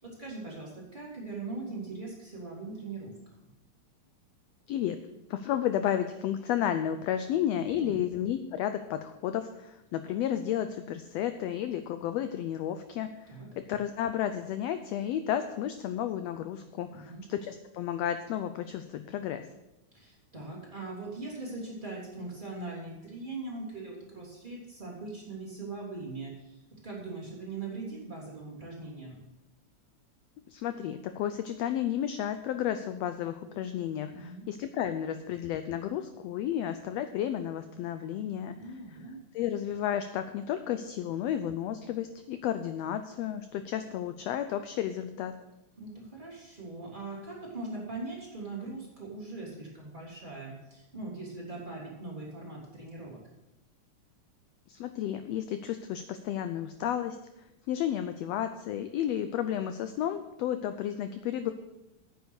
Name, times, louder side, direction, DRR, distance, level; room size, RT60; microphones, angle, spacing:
voice 1, 0.0-3.1 3.4-3.5 7.8-8.1 13.3-13.5 16.9-17.2 19.9-29.2 34.1-34.4 38.6-39.2 45.8-53.2, right 3 dB, 15° right, -5 dB, 3.0 m, -41 dB
voice 2, 5.3-19.4 30.5-38.6 39.3-45.3 54.7-57.2 57.7-61.5, left 10 dB, 80° left, 9 dB, 1.5 m, -32 dB
9.6 x 8.1 x 6.4 m, 0.96 s
omnidirectional pair, 3.4 m